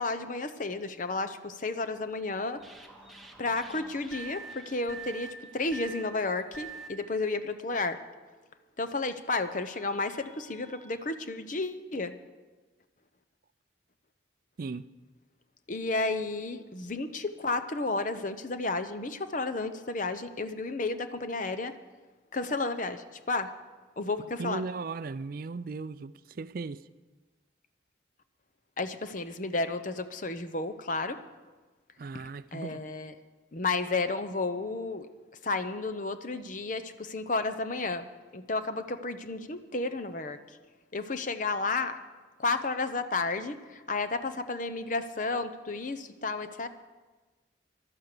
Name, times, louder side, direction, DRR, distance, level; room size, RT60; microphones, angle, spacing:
voice 1, 0.0-2.6 3.4-8.0 8.8-12.2 15.7-21.7 22.3-23.5 24.0-24.6 28.8-31.2 32.1-32.2 32.5-33.1 33.5-35.1 35.4-40.6 40.9-42.0 42.4-46.7, left 3 dB, 40° left, 0.8 m, -32 dB
sound 1, 2.6-6.9 8.1-8.2 9.6-10.9, right 4 dB, ahead, 1.3 m, -46 dB
voice 2, 14.6-14.9 24.4-26.9 32.0-32.8, right 4 dB, 50° right, 0.4 m, -37 dB
15.5 x 12.0 x 6.7 m
head